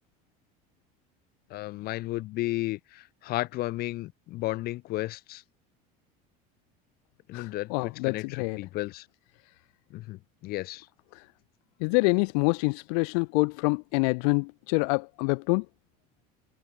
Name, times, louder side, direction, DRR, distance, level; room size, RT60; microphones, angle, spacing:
voice 1, 1.5-5.4 7.3-9.1 9.9-10.9, left 18 dB, 55° left, 2.1 m, -33 dB
voice 2, 7.3-8.6 11.1-11.3 11.8-15.7, left 35 dB, 80° left, 0.6 m, -26 dB
supercardioid pair, 130°, 19 cm